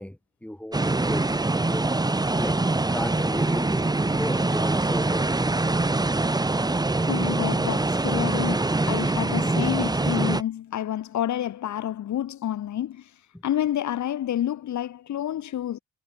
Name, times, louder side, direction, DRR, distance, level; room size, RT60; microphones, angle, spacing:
voice 1, 0.0-1.9 2.4-2.6 2.9-5.2 13.3-13.4, left 1 dB, 5° left, 7.8 m, -35 dB
sound 1, 0.7-10.4, right 2 dB, 15° right, 1.5 m, -24 dB
voice 2, 7.1-13.1 13.4-15.8, left 11 dB, 70° left, 3.4 m, -29 dB
cardioid pair, 90°, 30 cm